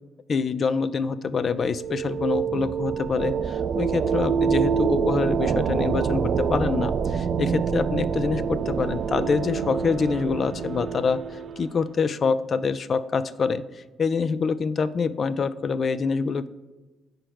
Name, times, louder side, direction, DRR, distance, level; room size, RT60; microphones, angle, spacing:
voice 1, 0.3-11.2 11.6-16.5, left 5 dB, 45° left, 15 dB, 0.4 m, -26 dB
sound 1, 1.4-11.9, right 6 dB, 60° right, 0.4 m, -26 dB
4.9 x 4.5 x 6.1 m, 1.2 s
cardioid pair, 90°, 0 cm